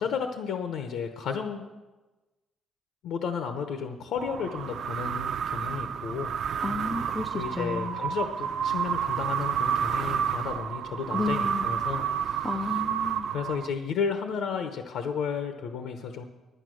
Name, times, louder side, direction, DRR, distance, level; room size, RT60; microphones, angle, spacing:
voice 1, 0.0-1.7 3.0-6.3 7.3-12.5 13.3-16.2, left 6 dB, 70° left, 7 dB, 0.9 m, -33 dB
sound 1, 4.2-13.9, right 8 dB, 45° right, 0.5 m, -30 dB
voice 2, 6.6-8.0 11.1-11.7 12.4-13.3, left 3 dB, 10° left, 5 dB, 0.4 m, -32 dB
11.5 x 9.8 x 6.3 m, 1.2 s
cardioid pair, 175°, 0 cm